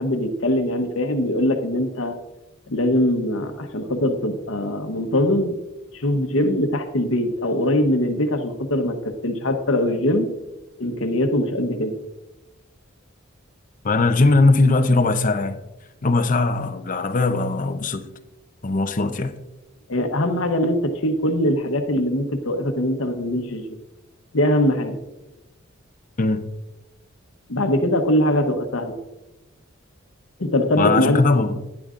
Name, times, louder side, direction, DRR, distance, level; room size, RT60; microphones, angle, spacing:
voice 1, 0.0-2.2 2.7-5.6 5.9-9.0 9.2-10.3 10.8-12.0 19.9-23.7 24.3-25.0 27.5-29.0 30.4-31.2, left 1 dB, 75° left, 1.0 m, -22 dB
voice 2, 13.8-15.6 16.0-18.1 18.6-19.4 26.2-26.5 30.8-31.6, left 3 dB, 40° left, 0.7 m, -19 dB
12.0 x 10.5 x 2.5 m
head